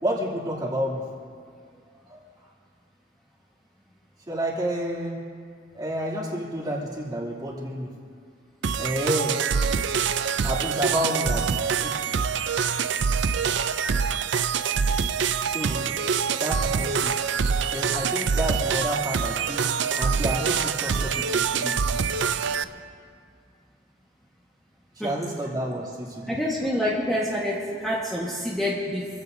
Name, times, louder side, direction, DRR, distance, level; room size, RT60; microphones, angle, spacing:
voice 1, 0.0-1.0 2.1-2.2 4.3-5.2 5.7-7.9 8.8-9.4 10.4-12.1 14.7-14.8 15.4-15.9 16.4-17.1 17.7-19.7 19.9-21.8 25.0-26.4, right 1 dB, 20° right, -4 dB, 2.8 m, -30 dB
sound 1, 8.6-22.6, right 6 dB, 70° right, 0.5 m, -25 dB
voice 2, 26.3-29.1, equal, ahead, -6 dB, 1.5 m, -27 dB
26.0 x 15.5 x 2.7 m, 2.1 s
head